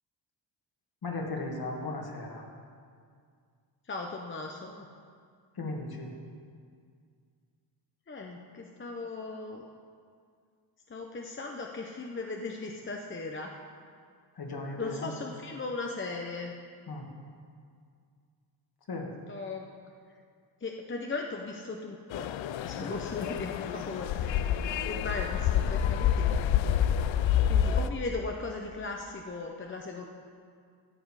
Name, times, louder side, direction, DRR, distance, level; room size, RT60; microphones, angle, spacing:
voice 1, 1.0-2.4 5.6-6.1 14.4-15.1 16.9-17.0 18.9-19.1 22.8-22.9, left 2 dB, 50° left, 1 dB, 2.0 m, -36 dB
voice 2, 3.9-4.9 8.1-9.7 10.9-13.5 14.8-16.5 19.3-19.7 20.6-22.3 22.6-24.3 24.8-26.8 27.5-30.0, left 3 dB, 25° left, 1 dB, 0.8 m, -37 dB
Alexandria Traffic, 22.1-27.9, left 9 dB, 75° left, 0.6 m, -28 dB
14.0 x 7.9 x 4.9 m, 2.2 s
cardioid pair, 85°, 47 cm